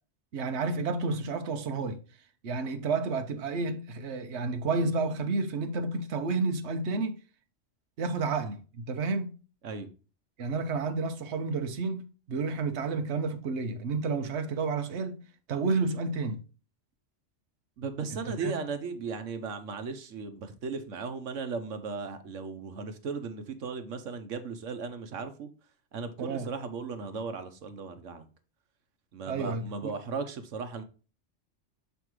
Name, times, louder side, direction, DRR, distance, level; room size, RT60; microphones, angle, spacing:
voice 1, 0.3-2.0 2.4-7.2 8.0-9.3 10.4-15.2 15.5-16.4 18.3-18.5 26.2-26.5 29.3-29.9, right 3 dB, 65° right, 1.2 m, -30 dB
voice 2, 17.8-25.5 25.9-28.2 29.1-30.8, right 4 dB, 85° right, 1.3 m, -36 dB
7.1 x 5.7 x 3.1 m
omnidirectional pair, 1.3 m